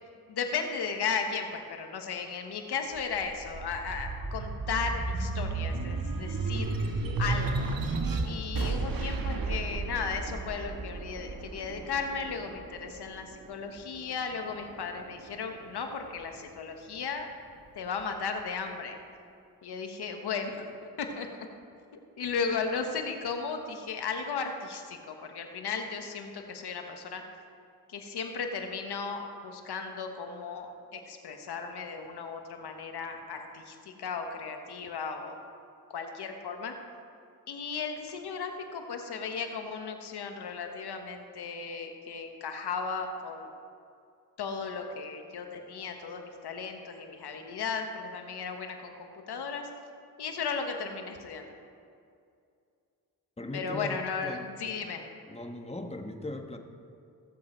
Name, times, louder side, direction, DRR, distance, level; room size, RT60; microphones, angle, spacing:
voice 1, 0.3-7.7 8.2-17.3 17.7-19.0 19.6-20.7 21.0-21.3 22.2-27.2 27.9-35.4 35.9-36.7 37.5-43.5 44.4-49.7 50.2-51.5 53.5-55.0, left 5 dB, 80° left, 5 dB, 1.3 m, -35 dB
sound 1, 3.0-13.8 14.3-15.4, right 3 dB, 60° right, 1.4 m, -33 dB
voice 2, 53.4-54.5 55.3-56.6, left 2 dB, 15° left, 4 dB, 1.5 m, -39 dB
16.0 x 7.6 x 4.5 m, 2.4 s
supercardioid pair, 40°, 39 cm